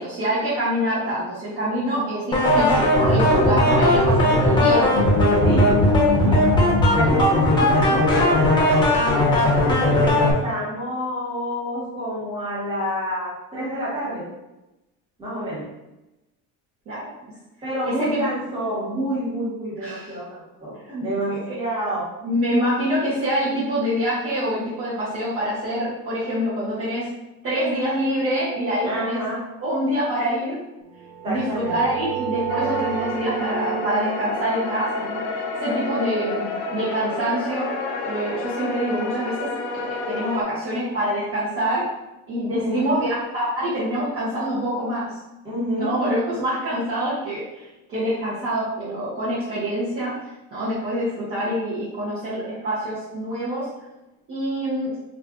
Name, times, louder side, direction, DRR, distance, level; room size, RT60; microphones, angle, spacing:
voice 1, 0.0-4.9 16.9-17.1 17.8-18.2 19.8-20.2 20.8-21.6 22.2-27.1 27.4-29.2 29.6-30.6 31.2-37.7 38.0-39.5 39.7-41.8 42.3-45.2 45.8-53.7 54.3-54.9, equal, 40° right, -10 dB, 0.8 m, -26 dB
voice 2, 1.7-2.0 5.4-5.7 6.2-6.4 6.9-8.9 9.6-14.2 15.2-15.6 17.6-20.7 21.0-22.1 28.8-29.4 31.2-31.7 42.5-42.9 45.4-45.9, equal, 15° right, -9 dB, 1.3 m, -28 dB
sound 1, 2.3-10.3, left 1 dB, 15° left, 0.6 m, -18 dB
sound 2, 30.9-36.5, right 7 dB, 75° right, 0.8 m, -31 dB
sound 3, 32.5-40.4, left 3 dB, 65° left, 0.6 m, -30 dB
2.5 x 2.4 x 3.5 m, 0.98 s
cardioid pair, 165°, 37 cm